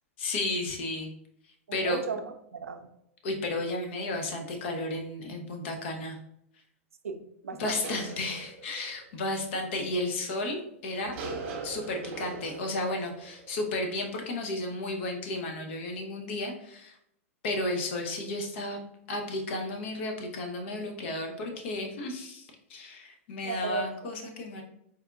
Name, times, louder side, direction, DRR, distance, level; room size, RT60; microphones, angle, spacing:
voice 1, 0.2-1.1 1.7-2.0 3.2-6.2 7.6-11.1 11.6-16.9 17.4-18.8 19.1-24.6, left 2 dB, 60° left, 3 dB, 0.8 m, -33 dB
voice 2, 1.7-2.9 7.0-7.8 23.4-24.1, right 5 dB, 85° right, 7 dB, 0.4 m, -36 dB
sound 1, 7.5-9.7 10.9-14.6, right 3 dB, 55° right, 0.7 m, -42 dB
4.1 x 2.6 x 2.3 m, 0.76 s
hypercardioid pair, 100°, 7 cm